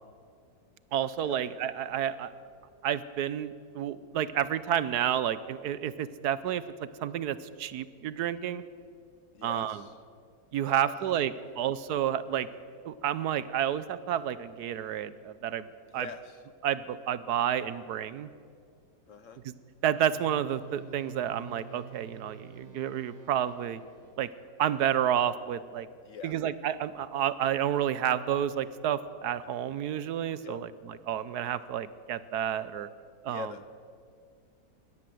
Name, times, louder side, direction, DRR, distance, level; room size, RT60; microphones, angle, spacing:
voice 1, 0.9-2.3 2.8-6.6 7.0-8.6 9.4-9.8 10.5-12.5 12.8-15.7 15.9-16.1 16.6-18.3 19.4-19.5 19.8-23.8 24.2-24.3 24.6-25.9 26.2-30.7 31.1-32.9 33.2-33.5, right 10 dB, 70° right, 15 dB, 1.2 m, -30 dB
voice 2, 9.3-10.0 10.7-11.7 15.9-16.4 19.1-19.4 26.0-26.4 30.4-30.7 33.3-33.7, left 6 dB, 55° left, 12 dB, 1.1 m, -44 dB
sound 1, 20.0-24.4, right 5 dB, 25° right, 2.0 m, -49 dB
21.5 x 17.0 x 7.7 m, 2.3 s
omnidirectional pair, 1.8 m